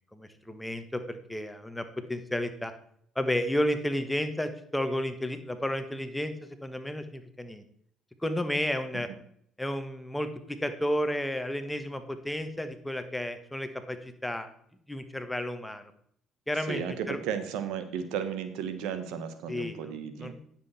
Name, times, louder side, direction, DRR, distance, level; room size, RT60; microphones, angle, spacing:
voice 1, 0.1-2.7 3.1-7.6 8.2-9.1 9.6-14.5 14.9-15.9 16.5-17.2 19.5-19.8 20.2-20.3, left 1 dB, 10° left, 8 dB, 1.3 m, -32 dB
voice 2, 16.5-20.3, right 7 dB, 80° right, 10 dB, 1.1 m, -34 dB
9.8 x 7.5 x 4.3 m, 0.65 s
supercardioid pair, 75°, 0 cm